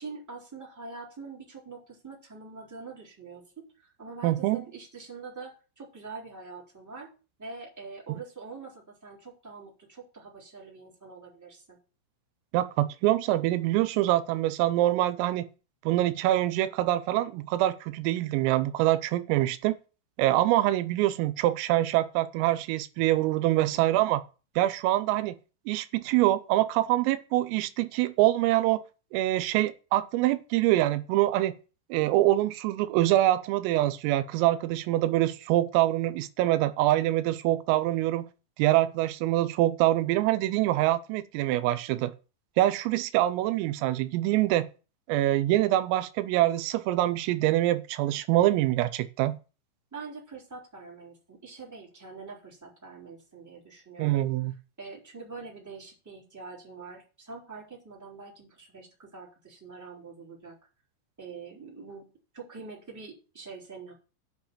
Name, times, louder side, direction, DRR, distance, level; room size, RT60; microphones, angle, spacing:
voice 1, 0.0-7.1 7.4-11.8 23.3-24.0 49.9-54.2 54.8-60.6 61.2-63.9, right 4 dB, 5° right, 3.0 m, -44 dB
voice 2, 4.2-4.6 12.5-15.4 15.9-19.8 20.2-24.2 24.6-25.4 25.7-28.8 29.1-31.5 31.9-38.3 38.6-42.1 42.6-44.7 45.1-49.4 54.0-54.5, right 15 dB, 85° right, 3.4 m, -25 dB
9.5 x 5.6 x 7.3 m
omnidirectional pair, 5.9 m